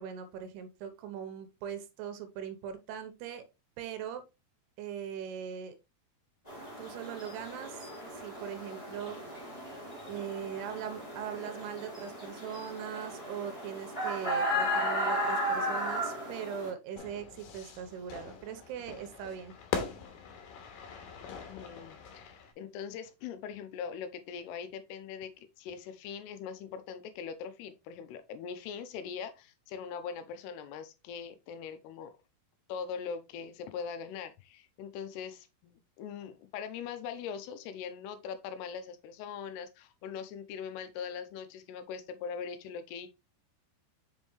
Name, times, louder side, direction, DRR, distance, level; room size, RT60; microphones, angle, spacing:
voice 1, 0.0-3.4 3.8-4.2 4.8-5.8 6.8-9.2 10.0-19.5, right 8 dB, 85° right, 2.8 m, -40 dB
sound 1, 6.5-16.7, equal, 30° left, 0.7 m, -35 dB
Fire / Fireworks, 17.0-22.5, left 6 dB, 70° left, 2.6 m, -41 dB
voice 2, 21.3-32.1 32.7-43.1, left 7 dB, 85° left, 2.7 m, -41 dB
6.3 x 5.4 x 3.1 m
omnidirectional pair, 4.8 m